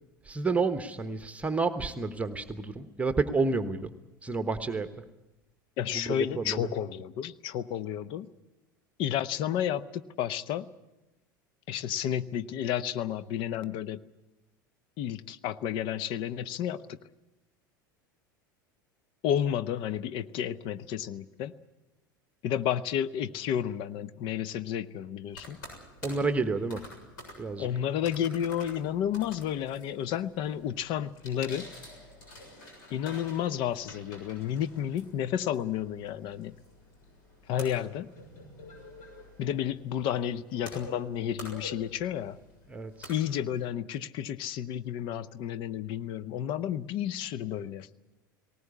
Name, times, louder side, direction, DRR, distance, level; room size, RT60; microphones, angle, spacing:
voice 1, 0.2-3.9 4.2-4.9 5.9-6.7 26.0-26.8 27.4-27.7 42.7-43.1, right 3 dB, 10° right, 9 dB, 1.1 m, -30 dB
voice 2, 5.8-8.3 9.0-10.7 11.7-14.0 15.0-17.0 19.2-21.5 22.4-25.6 27.6-31.7 32.9-36.6 37.5-38.1 39.4-42.4 43.1-47.9, left 10 dB, 50° left, 15 dB, 0.9 m, -31 dB
sound 1, 25.3-43.7, left 1 dB, 65° left, 7.0 m, -49 dB
19.5 x 18.5 x 9.7 m, 0.97 s
figure-of-eight pair, 80°, 11 cm